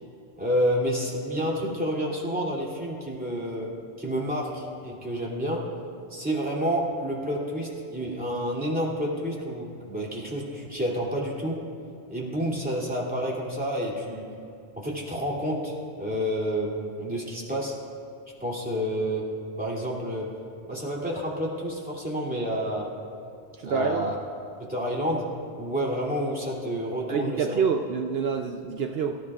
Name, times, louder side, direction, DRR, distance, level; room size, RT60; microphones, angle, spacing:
voice 1, 0.4-5.7 6.1-11.6 12.1-14.3 14.8-17.8 18.4-19.3 19.6-20.3 20.7-22.9 23.6-24.2 24.6-25.3 25.6-27.6, equal, 10° right, -5 dB, 2.8 m, -29 dB
voice 2, 23.6-24.1 27.1-29.2, right 6 dB, 65° right, 4 dB, 0.9 m, -27 dB
24.5 x 14.5 x 2.5 m, 2.7 s
omnidirectional pair, 1.1 m